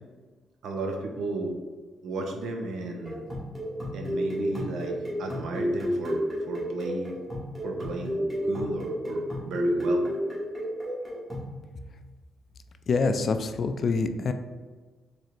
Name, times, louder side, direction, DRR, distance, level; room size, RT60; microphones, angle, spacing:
voice 1, 0.6-1.5 2.0-3.3 3.9-7.2 7.6-10.0, right 2 dB, 75° right, 2 dB, 0.6 m, -34 dB
sound 1, 3.1-11.6, equal, 15° right, 1.5 m, -31 dB
voice 2, 12.9-14.3, left 4 dB, 55° left, 8 dB, 0.3 m, -26 dB
4.2 x 3.1 x 2.5 m, 1.4 s
cardioid pair, 85°, 0 cm